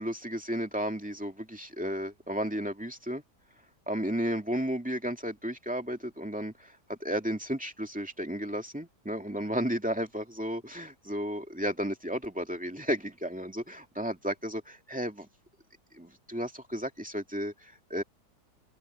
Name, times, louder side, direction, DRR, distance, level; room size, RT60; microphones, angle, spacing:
voice 1, 0.0-3.2 3.9-15.3 16.0-18.0, equal, 5° right, 2.2 m, -33 dB
open air
omnidirectional pair, 1.8 m